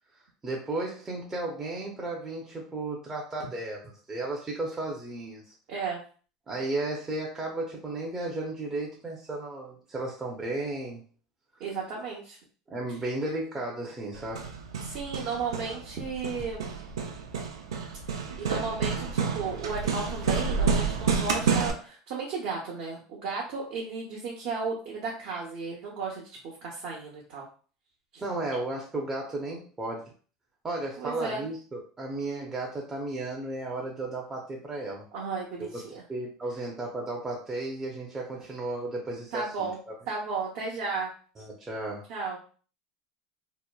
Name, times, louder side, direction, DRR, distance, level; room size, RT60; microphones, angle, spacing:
voice 1, 0.4-5.5 6.5-11.0 12.7-14.5 28.2-30.0 30.6-35.1 35.6-39.9 41.4-42.0, right 2 dB, 20° right, -2 dB, 0.6 m, -34 dB
voice 2, 5.7-6.0 11.6-12.4 14.8-16.7 18.1-26.3 26.6-27.5 28.1-28.2 31.0-31.4 35.1-36.0 39.3-39.8 40.1-41.1 42.1-42.4, right 4 dB, 60° right, -4 dB, 0.8 m, -34 dB
Hammer, 14.1-21.7, right 5 dB, 85° right, 0.4 m, -29 dB
2.9 x 2.1 x 2.2 m, 0.39 s
hypercardioid pair, 90°, 3 cm